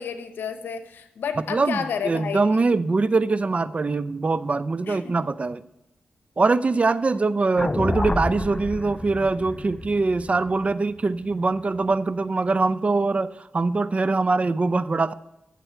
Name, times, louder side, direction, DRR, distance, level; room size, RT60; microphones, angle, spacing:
voice 1, 0.0-2.5 4.9-5.1, left 7 dB, 85° left, 9 dB, 1.0 m, -31 dB
voice 2, 1.5-5.6 6.4-15.1, right 3 dB, 40° right, 16 dB, 0.5 m, -23 dB
sound 1, 7.6-11.8, left 2 dB, 25° left, 0.3 m, -30 dB
13.5 x 7.6 x 4.5 m, 0.90 s
cardioid pair, 55°, 3 cm